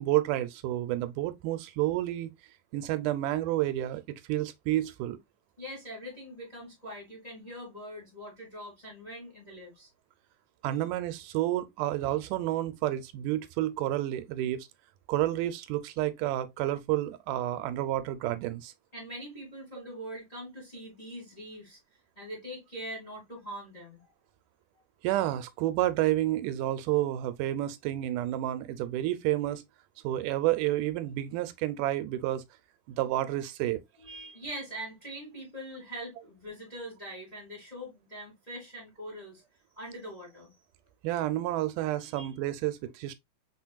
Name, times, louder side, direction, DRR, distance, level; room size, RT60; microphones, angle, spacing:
voice 1, 0.0-2.3 2.7-4.0 4.3-5.2 10.6-14.7 15.1-18.7 25.0-29.6 30.0-32.4 32.9-33.8 41.0-43.1, right 14 dB, 85° right, 2.1 m, -30 dB
voice 2, 5.6-9.9 10.7-10.9 18.9-21.8 22.1-24.1 34.0-39.4 39.8-40.5 42.1-42.3, equal, 15° left, 1.5 m, -43 dB
4.4 x 4.2 x 2.3 m
omnidirectional pair, 3.6 m